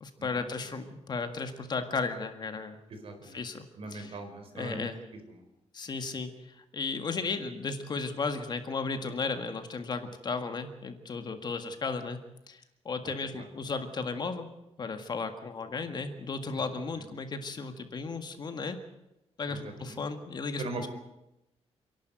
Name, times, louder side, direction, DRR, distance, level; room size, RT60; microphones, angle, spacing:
voice 1, 0.0-2.8 3.3-3.7 3.9-4.2 4.5-5.0 5.7-12.2 12.5-14.5 14.8-18.8 19.4-20.6, left 4 dB, 40° left, 7 dB, 1.8 m, -35 dB
voice 2, 2.9-3.4 3.8-4.9 5.3-5.4 13.0-13.7 16.6-16.7 16.9-17.0 19.5-20.0 20.6-20.9, right 2 dB, 60° right, 6 dB, 4.5 m, -41 dB
28.0 x 11.5 x 9.3 m, 0.91 s
wide cardioid pair, 155°, 11 cm